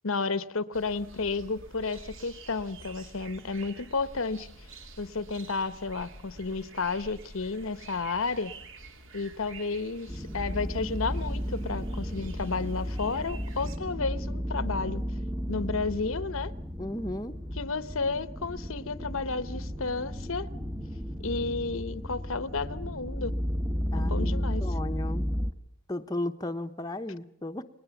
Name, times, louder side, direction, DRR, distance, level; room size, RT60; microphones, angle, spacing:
voice 1, 0.0-4.5 5.0-8.5 9.1-15.0 15.5-16.5 17.6-20.5 21.2-23.3 23.9-24.7, left 4 dB, 65° left, 0.9 m, -32 dB
sound 1, 0.7-13.8, right 2 dB, 60° right, 2.8 m, -48 dB
sound 2, 10.1-25.5, equal, 10° right, 1.0 m, -33 dB
voice 2, 16.8-17.3 23.9-25.3 25.9-27.6, left 1 dB, 15° left, 0.9 m, -35 dB
30.0 x 20.5 x 7.1 m
head